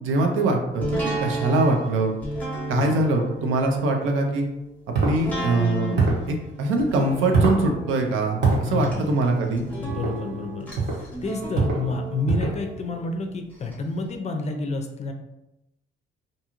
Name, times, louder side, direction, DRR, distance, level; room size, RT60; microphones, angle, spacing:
voice 1, 0.0-2.1 2.7-4.5 5.0-6.0 6.3-9.6, right 2 dB, 85° right, 3 dB, 0.5 m, -23 dB
sound 1, 0.8-13.7 14.1-14.2, right 1 dB, 5° left, 0.8 m, -34 dB
sound 2, 4.9-5.2 5.9-6.3 7.3-7.6 8.4-8.6 9.9-10.1 10.7-11.0 11.5-11.8 12.3-12.6, right 4 dB, 60° right, 1.0 m, -22 dB
voice 2, 8.6-9.1 9.8-15.1, left 3 dB, 35° left, 4 dB, 0.4 m, -29 dB
2.6 x 2.3 x 2.9 m, 0.90 s
cardioid pair, 90°, 20 cm